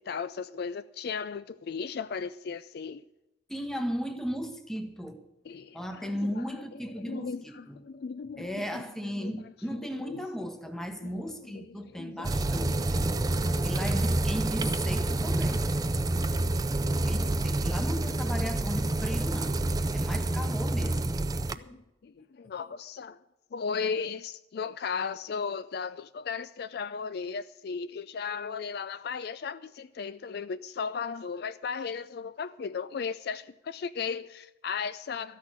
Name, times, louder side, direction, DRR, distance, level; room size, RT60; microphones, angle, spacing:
voice 1, 0.0-3.0 5.5-6.6 7.0-8.8 9.2-9.3 9.7-10.2 11.0-11.2 11.5-11.6 12.0-13.3 13.6-13.7 16.1-16.5 16.9-17.3 21.5-23.2 23.5-35.4, left 5 dB, 55° left, 0.3 m, -36 dB
voice 2, 3.5-5.2 5.6-7.8 8.3-13.1 13.6-15.7 17.1-19.6 19.9-21.2 21.7-21.8, equal, ahead, 1.0 m, -36 dB
sound 1, 12.2-21.6, right 2 dB, 20° right, 0.4 m, -28 dB
13.5 x 6.4 x 9.1 m
head